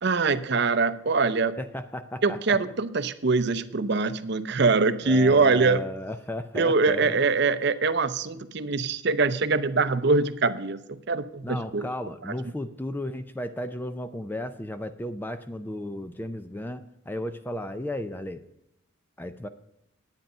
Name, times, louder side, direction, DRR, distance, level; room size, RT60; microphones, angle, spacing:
voice 1, 0.0-1.6 2.2-5.9 6.5-11.8, right 4 dB, 55° right, 13 dB, 0.6 m, -23 dB
voice 2, 1.6-2.6 5.0-7.2 11.4-18.4 19.2-19.5, left 1 dB, 10° left, 10 dB, 0.5 m, -34 dB
10.5 x 8.9 x 5.5 m, 0.84 s
head